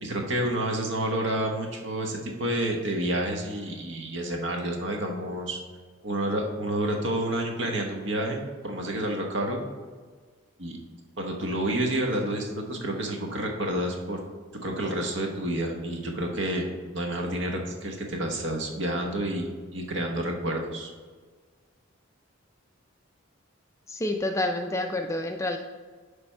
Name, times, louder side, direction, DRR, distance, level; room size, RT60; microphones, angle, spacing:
voice 1, 0.0-5.6 6.0-9.6 10.6-10.8 11.2-14.2 14.5-16.6 16.9-20.9, right 1 dB, 60° right, 1 dB, 1.1 m, -29 dB
voice 2, 23.9-25.6, left 1 dB, 15° left, 4 dB, 0.3 m, -28 dB
9.7 x 3.5 x 4.4 m, 1.5 s
head